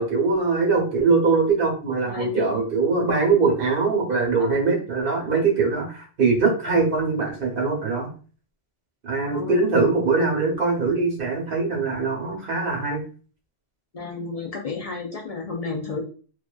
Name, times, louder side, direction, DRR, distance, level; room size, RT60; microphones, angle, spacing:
voice 1, 0.0-8.1 9.0-13.0, right 4 dB, 60° right, 0 dB, 0.9 m, -22 dB
voice 2, 2.1-2.7 4.4-4.7 6.6-6.9 9.2-9.7 13.9-16.1, left 4 dB, 55° left, -2 dB, 0.4 m, -32 dB
2.5 x 2.2 x 2.2 m, 0.39 s
omnidirectional pair, 1.1 m